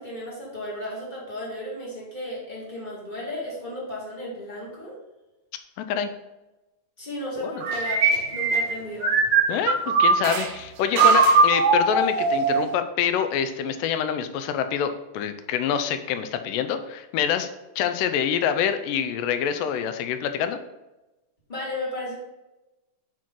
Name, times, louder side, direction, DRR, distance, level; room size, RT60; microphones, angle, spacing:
voice 1, 0.0-5.0 7.0-8.0 8.3-9.1 21.5-22.2, left 1 dB, 30° left, -5 dB, 0.9 m, -34 dB
sound 1, 7.6-10.5 11.0-12.7, right 4 dB, 75° right, 1.6 m, -20 dB
voice 2, 9.5-17.5 17.8-20.6, left 8 dB, 85° left, 9 dB, 2.2 m, -26 dB
5.6 x 5.1 x 3.7 m, 1.0 s
omnidirectional pair, 3.8 m